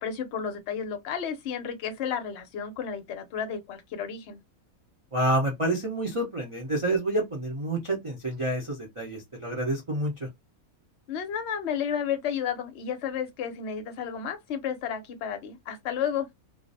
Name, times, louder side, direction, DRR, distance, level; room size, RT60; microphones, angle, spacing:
voice 1, 0.0-4.4 11.1-16.3, left 8 dB, 60° left, 0.8 m, -32 dB
voice 2, 5.1-10.3, right 1 dB, 45° right, 0.4 m, -28 dB
2.4 x 2.0 x 2.6 m
omnidirectional pair, 1.5 m